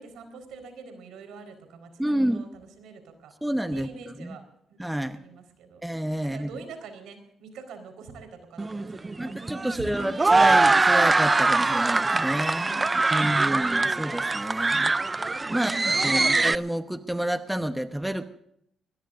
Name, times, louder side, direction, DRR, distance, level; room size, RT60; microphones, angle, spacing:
voice 1, 0.0-3.3 3.7-4.4 5.1-5.8 6.2-10.3 12.6-13.6 15.5-16.5, right 4 dB, 80° right, 8 dB, 4.4 m, -45 dB
voice 2, 2.0-2.4 3.4-3.9 4.2-4.4 4.8-5.2 5.8-6.5 9.2-12.7 13.1-18.2, right 1 dB, 5° right, 9 dB, 1.0 m, -29 dB
sound 1, 8.6-16.5, right 3 dB, 20° right, 0.5 m, -23 dB
21.0 x 20.0 x 2.6 m, 0.72 s
cardioid pair, 90°, 0 cm